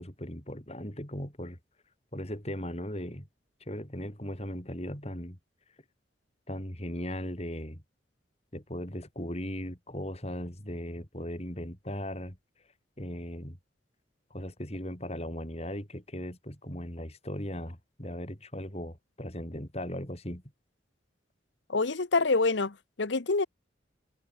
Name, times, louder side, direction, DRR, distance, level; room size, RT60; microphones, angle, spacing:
voice 1, 0.0-1.6 2.1-3.3 3.7-5.4 6.5-7.8 8.5-12.4 13.0-13.6 14.3-20.4, equal, 35° left, 5.8 m, -38 dB
voice 2, 21.7-23.5, left 3 dB, 70° left, 1.0 m, -26 dB
head